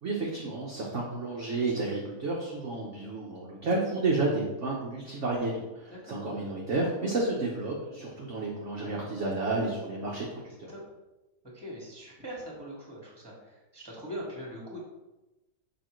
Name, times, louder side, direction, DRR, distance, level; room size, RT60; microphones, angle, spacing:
voice 1, 0.0-10.7, right 2 dB, 50° right, -3 dB, 1.1 m, -31 dB
voice 2, 5.9-6.5 7.9-8.0 10.4-10.8 11.5-14.8, equal, 15° right, -4 dB, 1.8 m, -42 dB
6.7 x 5.0 x 3.1 m, 1.1 s
omnidirectional pair, 1.8 m